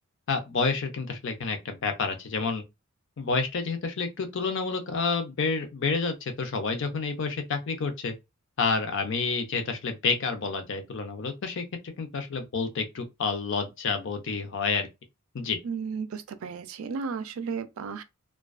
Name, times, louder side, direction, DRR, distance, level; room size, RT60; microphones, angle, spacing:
voice 1, 0.3-2.6 3.2-8.1 8.6-14.9 15.3-15.6, left 4 dB, 60° left, 0.5 m, -29 dB
voice 2, 15.6-18.0, right 5 dB, 70° right, 0.4 m, -34 dB
2.3 x 2.2 x 2.3 m
head